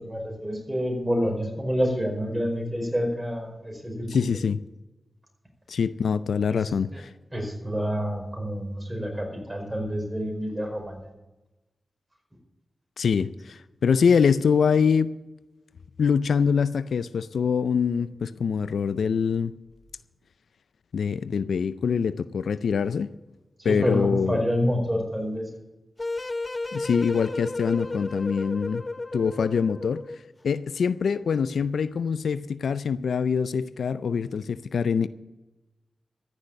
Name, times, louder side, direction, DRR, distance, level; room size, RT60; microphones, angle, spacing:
voice 1, 0.0-4.1 6.5-6.6 6.9-7.0 7.3-11.1 23.6-25.5, equal, 20° right, 5.2 m, -28 dB
voice 2, 4.1-4.6 5.7-7.1 13.0-15.2 16.0-19.5 20.9-23.1 23.6-24.4 26.7-28.8 29.1-30.0 30.4-35.1, left 6 dB, 85° left, 0.4 m, -24 dB
sound 1, 26.0-30.3, left 2 dB, 35° left, 0.7 m, -33 dB
14.5 x 6.7 x 9.0 m
cardioid pair, 40°, 0 cm